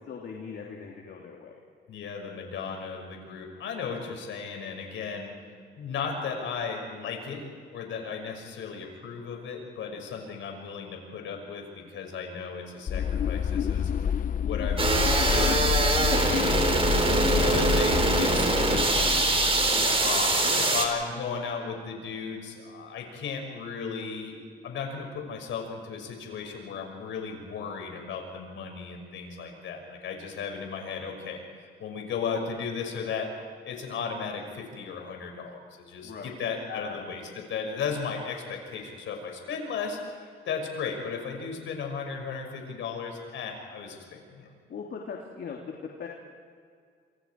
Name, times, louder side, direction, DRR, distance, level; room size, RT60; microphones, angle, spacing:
voice 1, 0.0-1.5 18.0-18.3 19.7-20.1 20.4-20.7 36.0-36.4 36.7-37.0 44.4-45.6 46.0-46.1, left 6 dB, 60° left, -1 dB, 3.2 m, -40 dB
voice 2, 1.9-5.3 5.8-7.4 7.7-13.9 14.4-19.2 20.0-24.4 24.6-33.3 33.6-44.5, left 5 dB, 75° left, 2 dB, 6.3 m, -35 dB
sound 1, 12.9-20.3, left 7 dB, 40° left, 0.6 m, -28 dB
sound 2, 14.8-20.9, right 2 dB, 30° right, 4.3 m, -24 dB
27.5 x 27.0 x 4.8 m, 2.1 s
cardioid pair, 90°, 20 cm